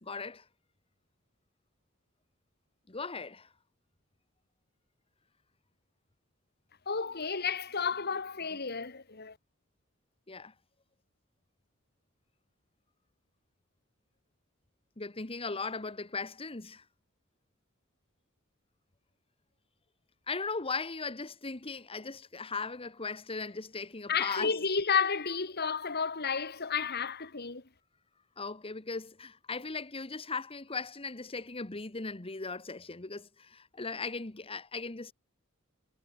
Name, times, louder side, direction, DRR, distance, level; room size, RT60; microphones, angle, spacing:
voice 1, 0.0-0.4 2.9-3.5 10.3-10.5 15.0-16.8 20.3-24.5 28.4-35.1, left 4 dB, 25° left, 1.3 m, -38 dB
voice 2, 6.9-9.4 24.1-27.6, left 6 dB, 50° left, 2.3 m, -31 dB
head